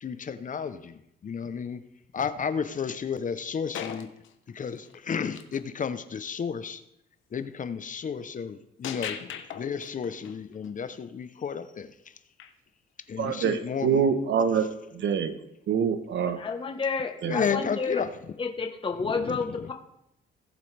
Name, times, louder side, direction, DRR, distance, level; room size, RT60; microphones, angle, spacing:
voice 1, 0.0-1.8 2.1-4.1 4.5-6.8 7.3-9.2 9.6-11.9 13.1-14.1 17.2-18.1 19.2-19.4, left 6 dB, 40° left, 0.8 m, -32 dB
sound 1, 3.2-3.3 3.7-5.6 6.0-6.2 8.8-10.8 12.4-12.5 16.9-17.0, left 9 dB, 75° left, 1.0 m, -39 dB
voice 2, 13.2-14.7 14.9-15.4 15.7-16.4 17.2-17.4, right 7 dB, 65° right, 1.2 m, -25 dB
voice 3, 16.3-18.1 18.4-19.7, left 4 dB, 25° left, 1.2 m, -30 dB
18.0 x 7.4 x 3.4 m
cardioid pair, 90°, 20 cm